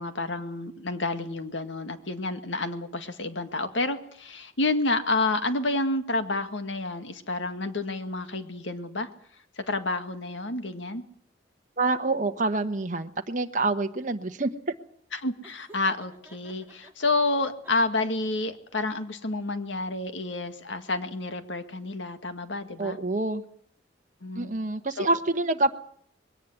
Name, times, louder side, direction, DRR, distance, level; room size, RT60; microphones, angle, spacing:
voice 1, 0.0-9.1 9.6-11.0 15.1-23.0 24.2-24.5 25.0-25.2, left 2 dB, 85° left, 8 dB, 2.1 m, -29 dB
voice 2, 11.8-14.7 22.8-23.4 24.3-25.8, right 2 dB, 45° right, 5 dB, 1.2 m, -27 dB
Laughter, 15.4-16.9 17.4-18.3, right 1 dB, 10° right, 3.2 m, -52 dB
21.5 x 18.0 x 8.1 m, 0.62 s
head